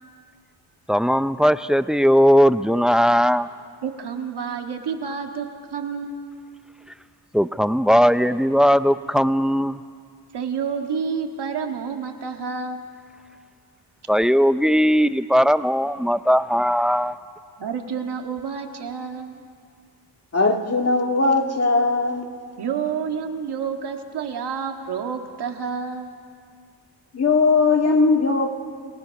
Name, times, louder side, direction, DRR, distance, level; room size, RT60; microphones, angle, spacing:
voice 1, 0.9-3.5 7.3-9.8 14.1-17.1, equal, ahead, 13 dB, 0.5 m, -18 dB
voice 2, 3.8-6.2 10.3-12.8 17.6-19.4 22.6-26.1, right 6 dB, 65° right, 4 dB, 2.0 m, -29 dB
voice 3, 20.3-22.3 27.1-28.5, left 3 dB, 35° left, 4 dB, 1.9 m, -19 dB
28.5 x 18.5 x 5.9 m, 2.1 s
cardioid pair, 85°, 42 cm